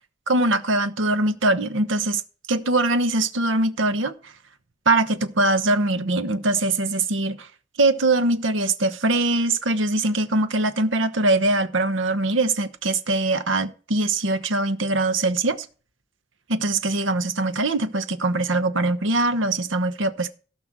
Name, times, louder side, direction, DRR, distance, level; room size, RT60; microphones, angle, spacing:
voice 1, 0.3-2.2 2.5-4.3 4.9-7.5 7.8-15.7 16.5-20.3, right 2 dB, 85° right, 1.1 m, -22 dB
16.5 x 5.8 x 6.1 m
head